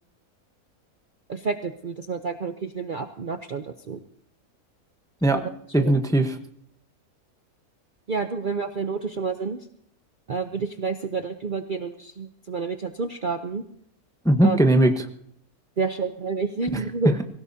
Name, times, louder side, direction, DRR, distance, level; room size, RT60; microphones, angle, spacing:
voice 1, 1.3-4.0 5.3-5.4 5.8-5.9 8.1-9.6 10.3-13.6 14.4-14.6 15.8-17.2, right 4 dB, 45° right, 7 dB, 0.7 m, -29 dB
voice 2, 5.7-6.4 14.2-15.0 16.7-16.8, right 1 dB, 5° left, 6 dB, 0.8 m, -19 dB
24.0 x 16.5 x 2.8 m, 0.69 s
omnidirectional pair, 1.6 m